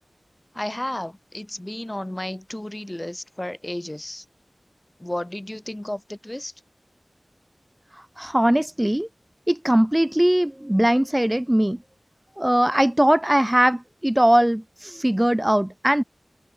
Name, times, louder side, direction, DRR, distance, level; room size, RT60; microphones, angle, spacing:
voice 1, 0.5-4.2 5.0-6.5, left 1 dB, 20° left, 2.5 m, -32 dB
voice 2, 7.9-9.1 9.5-11.8 12.4-16.0, right 1 dB, 15° right, 1.4 m, -20 dB
wide cardioid pair, 60°, 0 cm